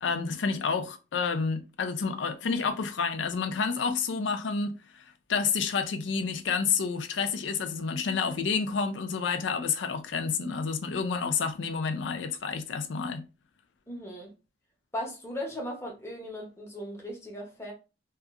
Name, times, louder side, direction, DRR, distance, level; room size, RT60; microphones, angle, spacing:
voice 1, 0.0-13.3, left 5 dB, 80° left, 0.4 m, -29 dB
voice 2, 13.9-14.3 14.9-17.7, equal, 15° left, 0.8 m, -37 dB
2.7 x 2.4 x 2.4 m
head